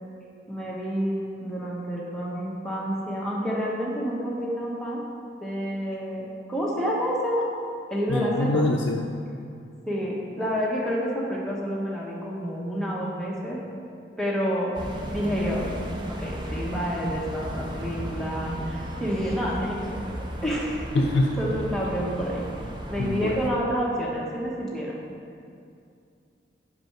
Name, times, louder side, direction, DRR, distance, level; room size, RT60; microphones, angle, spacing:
voice 1, 0.5-5.0 5.4-7.5 7.9-8.7 9.9-13.6 14.2-15.7 16.1-19.9 20.4-21.1 21.4-22.4 22.9-25.0, equal, 5° left, -5 dB, 1.0 m, -29 dB
voice 2, 8.1-9.1 20.9-21.3 23.0-23.4, left 2 dB, 85° left, 1 dB, 0.4 m, -24 dB
sound 1, 14.7-23.5, equal, 25° right, 0.5 m, -35 dB
5.5 x 5.2 x 5.9 m, 2.5 s
head